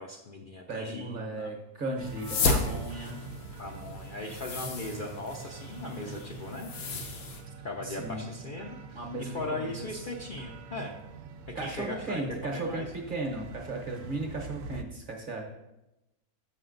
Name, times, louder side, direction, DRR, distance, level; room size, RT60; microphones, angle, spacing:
voice 1, 0.0-1.5 3.6-6.7 7.6-11.0 11.6-12.2 12.5-12.8, left 2 dB, 50° left, 0 dB, 0.6 m, -38 dB
voice 2, 0.7-3.2 7.8-8.3 8.9-9.9 11.5-15.4, right 2 dB, 40° right, 1 dB, 1.0 m, -36 dB
sound 1, 2.0-7.4, left 4 dB, 80° left, 1.3 m, -34 dB
sound 2, 2.0-14.8, right 5 dB, 65° right, 0.9 m, -45 dB
6.6 x 6.4 x 3.9 m, 0.94 s
omnidirectional pair, 1.5 m